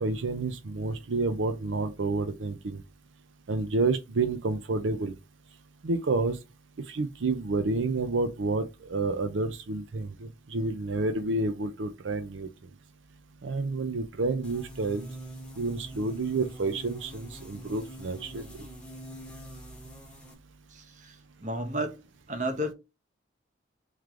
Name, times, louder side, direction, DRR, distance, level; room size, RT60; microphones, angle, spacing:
voice 1, 0.0-2.8 3.5-5.1 5.8-6.4 6.9-12.5 13.4-15.1 15.6-18.5, right 3 dB, 80° right, 0.5 m, -29 dB
sound 1, 14.4-20.3, right 1 dB, 5° left, 0.9 m, -44 dB
voice 2, 20.7-21.2 21.4-22.0 22.3-22.7, right 1 dB, 40° right, 0.8 m, -32 dB
3.7 x 3.2 x 3.1 m
head